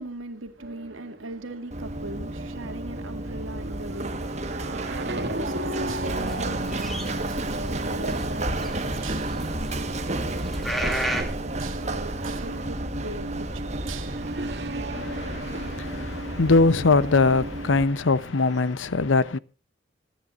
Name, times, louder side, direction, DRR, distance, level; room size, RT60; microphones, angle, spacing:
voice 1, 0.0-14.6, right 2 dB, 90° right, 2.2 m, -40 dB
sound 1, 0.6-18.7, right 2 dB, 55° right, 2.2 m, -38 dB
Run, 1.7-17.8, right 2 dB, 35° right, 1.4 m, -32 dB
sound 2, 5.7-11.2, right 1 dB, ahead, 2.5 m, -33 dB
voice 2, 14.9-19.4, left 3 dB, 75° left, 0.7 m, -22 dB
27.0 x 10.0 x 2.5 m
head